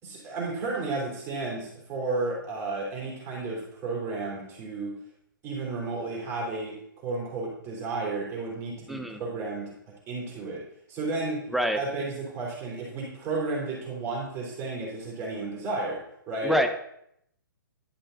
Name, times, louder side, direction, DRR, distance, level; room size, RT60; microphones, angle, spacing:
voice 1, 0.0-4.9 5.4-10.6 10.9-11.4 11.7-16.6, right 3 dB, 20° right, -3 dB, 3.5 m, -33 dB
voice 2, 8.9-9.2 11.5-11.8 16.4-16.7, equal, ahead, 7 dB, 0.6 m, -25 dB
11.0 x 5.6 x 3.9 m, 0.73 s
hypercardioid pair, 135°, 12 cm